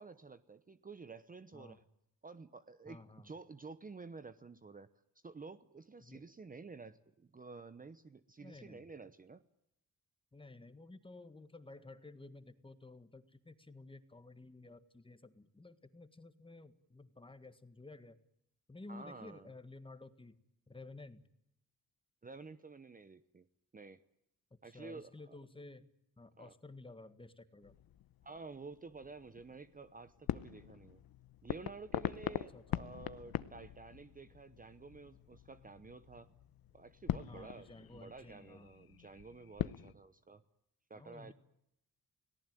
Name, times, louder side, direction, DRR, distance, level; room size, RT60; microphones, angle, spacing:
voice 1, 0.0-1.8 2.2-4.9 5.2-9.4 18.9-19.5 22.2-23.5 23.7-24.0 24.6-25.3 26.4-26.5 28.2-31.0 31.4-36.3 36.7-40.4 40.9-41.3, right 4 dB, 25° right, 13 dB, 0.9 m, -51 dB
voice 2, 2.9-3.3 6.0-6.2 8.4-8.8 10.3-18.2 18.7-20.4 20.7-21.2 24.5-25.9 26.2-27.8 32.5-32.8 37.1-38.7 40.9-41.3, left 2 dB, 15° left, 11 dB, 1.7 m, -53 dB
sound 1, 27.6-39.9, left 12 dB, 75° left, 1.0 m, -43 dB
29.5 x 18.5 x 9.1 m, 0.80 s
cardioid pair, 130°, 36 cm